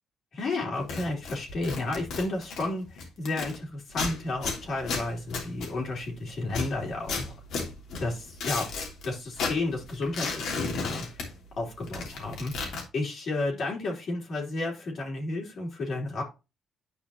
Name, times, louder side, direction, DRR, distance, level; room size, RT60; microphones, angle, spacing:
voice 1, 0.3-7.3 8.0-8.7 9.0-11.3 11.6-16.2, left 2 dB, 60° left, -3 dB, 3.3 m, -32 dB
sound 1, 0.8-3.6 3.9-6.1 6.5-9.1 9.3-11.6 11.8-12.8, left 4 dB, 80° left, 3.0 m, -34 dB
11.0 x 5.0 x 2.9 m, 0.28 s
cardioid pair, 90°, 0 cm